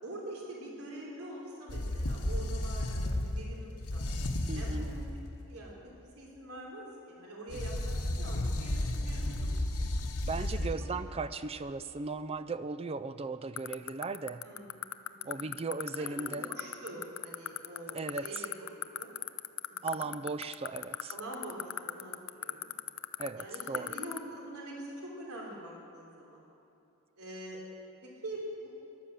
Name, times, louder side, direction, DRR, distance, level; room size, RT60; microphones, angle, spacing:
voice 1, 0.0-4.0 4.5-5.0 5.5-9.7 10.5-10.9 14.4-14.7 15.1-15.4 16.0-19.2 19.7-20.1 21.1-22.7 23.4-26.4 27.2-27.6 28.0-28.7, right 1 dB, 80° right, -2 dB, 3.2 m, -45 dB
sound 1, 1.7-5.2 7.5-10.7, left 1 dB, 80° left, 1.2 m, -33 dB
voice 2, 4.5-4.9 10.2-14.4 15.2-16.4 17.9-18.3 19.8-21.1 23.2-23.9, right 4 dB, 25° right, 13 dB, 0.4 m, -37 dB
sound 2, 13.6-24.2, left 12 dB, 65° left, 0.5 m, -34 dB
14.5 x 11.5 x 7.5 m, 2.8 s
head